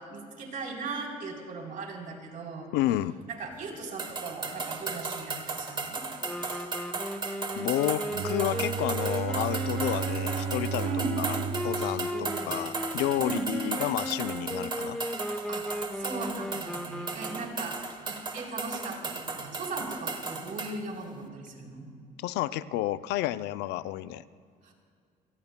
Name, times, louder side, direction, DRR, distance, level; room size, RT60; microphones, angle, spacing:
voice 1, 0.0-2.7 3.3-6.0 10.8-11.1 12.1-12.6 13.2-13.5 15.5-17.8 18.1-21.9 24.6-24.7, right 3 dB, 55° right, 0 dB, 3.6 m, -38 dB
voice 2, 2.7-3.2 6.5-6.6 7.6-10.9 11.2-11.4 11.6-15.0 22.2-24.2, left 14 dB, 90° left, 14 dB, 0.5 m, -31 dB
sound 1, 4.0-20.8, right 4 dB, 25° right, 1.4 m, -36 dB
Wind instrument woodwind instrument, 6.2-17.9, equal, 5° left, 0.9 m, -36 dB
Bowed string instrument, 8.1-13.0, right 7 dB, 70° right, 0.5 m, -34 dB
28.0 x 18.0 x 2.2 m, 2.2 s
cardioid pair, 110°, 17 cm